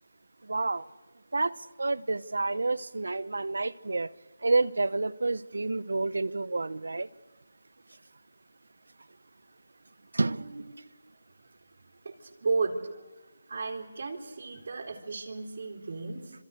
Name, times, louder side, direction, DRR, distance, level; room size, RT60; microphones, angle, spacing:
voice 1, 0.4-0.9 1.3-4.1 4.4-7.1 10.1-10.7, right 3 dB, 80° right, 1.0 m, -29 dB
voice 2, 10.4-10.9 12.0-12.8 13.5-16.3, right 4 dB, 50° right, 3.9 m, -34 dB
27.5 x 26.0 x 6.6 m
figure-of-eight pair, 170°, 0 cm